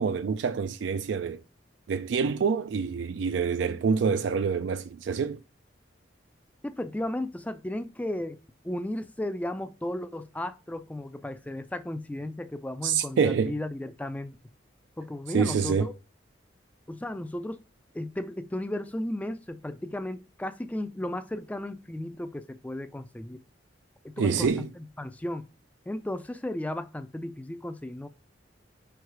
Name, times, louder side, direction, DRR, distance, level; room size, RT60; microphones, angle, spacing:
voice 1, 0.0-1.4 1.9-5.4 12.8-13.5 15.3-15.9 24.2-24.7, right 6 dB, 80° right, 0.4 m, -26 dB
voice 2, 6.6-8.4 8.6-14.4 15.0-15.9 16.9-17.6 17.9-23.4 24.2-25.5 25.9-28.1, left 1 dB, 10° left, 0.3 m, -35 dB
4.7 x 4.6 x 4.6 m
head